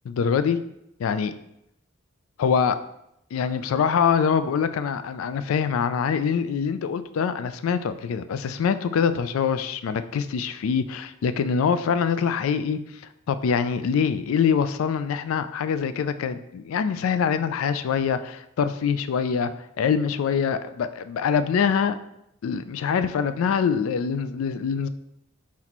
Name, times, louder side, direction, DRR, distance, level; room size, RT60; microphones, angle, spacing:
voice 1, 0.1-0.6 1.0-1.3 2.4-2.8 3.3-12.8 13.3-19.5 19.8-22.0 22.4-24.9, left 6 dB, 85° left, 12 dB, 0.3 m, -24 dB
4.3 x 4.1 x 3.0 m, 0.80 s
head